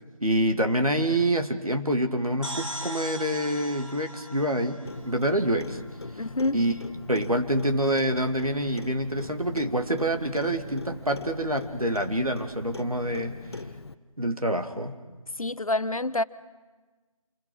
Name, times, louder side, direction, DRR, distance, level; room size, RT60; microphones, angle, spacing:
voice 1, 0.2-5.8 6.5-6.7 7.1-13.4 14.2-15.0, right 1 dB, 90° right, 2.4 m, -26 dB
sound 1, 2.4-6.1, right 1 dB, 65° right, 5.3 m, -39 dB
Clock, 4.8-13.9, left 3 dB, 50° left, 0.9 m, -41 dB
voice 2, 6.2-6.6 15.4-16.2, left 2 dB, 75° left, 0.9 m, -27 dB
27.5 x 25.0 x 6.4 m
figure-of-eight pair, 160°, 18 cm